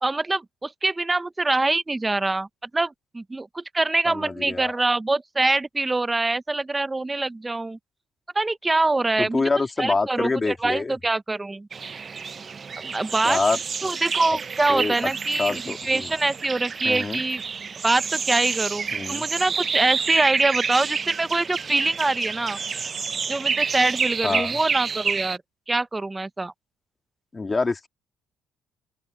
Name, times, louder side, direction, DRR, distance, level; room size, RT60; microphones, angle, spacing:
voice 1, 0.0-2.5 2.7-7.8 8.3-9.4 9.8-11.7 12.8-13.4 13.8-17.4 17.8-22.6 23.3-25.4 25.7-26.5, right 2 dB, 20° right, 0.8 m, -24 dB
voice 2, 4.0-4.7 9.2-10.9 13.2-13.6 14.7-15.1 15.4-16.1 16.8-17.2 18.9-19.3 24.2-24.6 27.3-27.9, left 3 dB, 25° left, 3.0 m, -26 dB
sound 1, 11.7-25.4, right 5 dB, 40° right, 0.5 m, -29 dB
cardioid pair, 85°, 0 cm